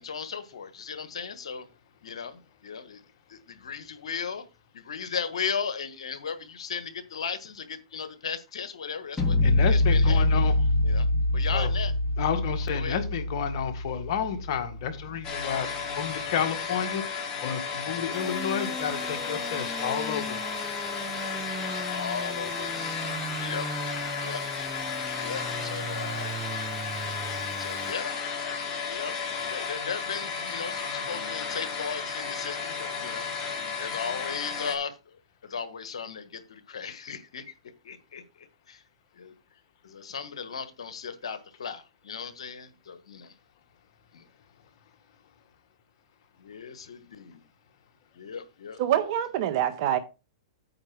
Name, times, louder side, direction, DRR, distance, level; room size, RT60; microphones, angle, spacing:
voice 1, 0.0-1.7 2.0-3.0 3.3-4.5 4.7-9.4 9.7-10.5 10.8-11.9 12.7-13.0 16.4-17.0 21.8-23.1 23.3-23.7 24.2-24.4 25.1-26.4 27.6-28.2 28.8-29.2 29.5-33.3 33.8-35.0 35.4-37.5 37.8-38.2 38.7-38.8 39.2-39.3 39.8-43.3 44.1-44.2 46.4-47.4 48.1-49.1, left 6 dB, 80° left, 1.4 m, -36 dB
sound 1, 9.2-15.2, left 2 dB, 10° left, 3.2 m, -25 dB
voice 2, 9.4-10.6 11.5-11.7 12.2-17.1 17.4-20.7, left 8 dB, 60° left, 1.7 m, -31 dB
sound 2, 15.2-34.8, left 5 dB, 30° left, 2.8 m, -33 dB
sound 3, 18.1-27.9, right 3 dB, 10° right, 0.9 m, -39 dB
voice 3, 48.8-50.0, right 11 dB, 55° right, 1.5 m, -25 dB
8.8 x 4.6 x 6.0 m
hypercardioid pair, 125°, 3 cm